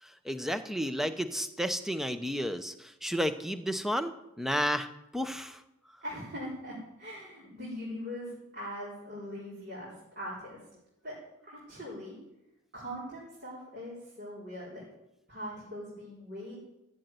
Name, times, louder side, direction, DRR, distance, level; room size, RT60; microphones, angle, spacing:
voice 1, 0.0-4.9 5.1-5.6, equal, ahead, 10 dB, 0.7 m, -32 dB
voice 2, 6.0-10.6 11.0-11.2 11.4-12.2 12.7-14.9 15.3-16.6, equal, 50° right, -8 dB, 4.7 m, -41 dB
15.0 x 7.9 x 9.4 m, 0.92 s
head